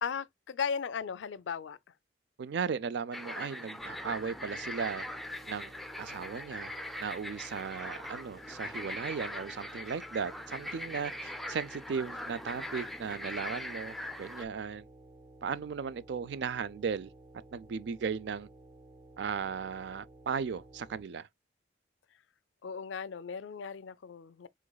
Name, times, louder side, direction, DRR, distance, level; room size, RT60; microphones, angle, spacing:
voice 1, 0.0-1.8 22.6-24.5, left 6 dB, 80° left, 0.4 m, -36 dB
voice 2, 2.4-5.0 5.5-6.7 7.0-14.8 15.4-17.1 17.5-18.5 19.2-21.3, right 6 dB, 65° right, 0.4 m, -36 dB
sound 1, 3.1-14.4, left 1 dB, ahead, 0.4 m, -41 dB
sound 2, 3.8-21.0, right 2 dB, 35° right, 0.8 m, -55 dB
5.0 x 4.0 x 2.2 m
head